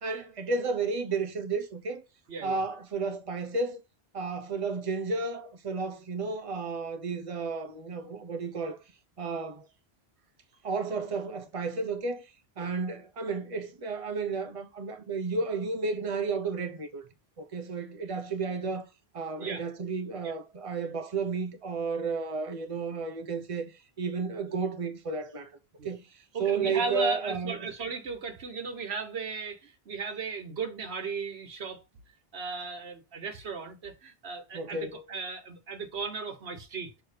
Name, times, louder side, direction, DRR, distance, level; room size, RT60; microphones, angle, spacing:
voice 1, 0.0-2.0 2.4-3.8 4.1-8.8 9.2-9.7 10.6-12.3 12.6-17.0 17.4-18.8 19.1-25.5 25.8-27.7 34.5-35.0, right 4 dB, 35° right, 1.0 m, -32 dB
voice 2, 2.3-2.6 12.6-12.7 19.4-19.6 20.2-20.3 25.8-25.9 26.3-31.8 32.3-36.9, right 4 dB, 85° right, 1.4 m, -36 dB
6.4 x 3.0 x 5.0 m
omnidirectional pair, 1.0 m